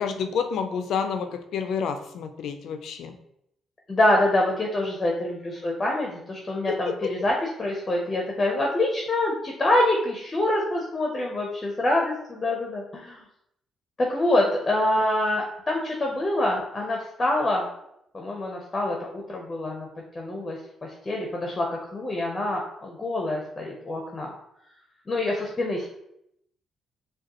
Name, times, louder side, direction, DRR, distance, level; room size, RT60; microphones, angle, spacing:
voice 1, 0.0-3.1 6.7-6.8, left 6 dB, 75° left, 7 dB, 0.4 m, -29 dB
voice 2, 3.9-13.2 14.0-17.7 18.1-19.9 20.1-24.3 25.1-25.9, left 1 dB, 25° left, 0 dB, 0.7 m, -26 dB
4.9 x 2.3 x 3.0 m, 0.76 s
cardioid pair, 90°, 0 cm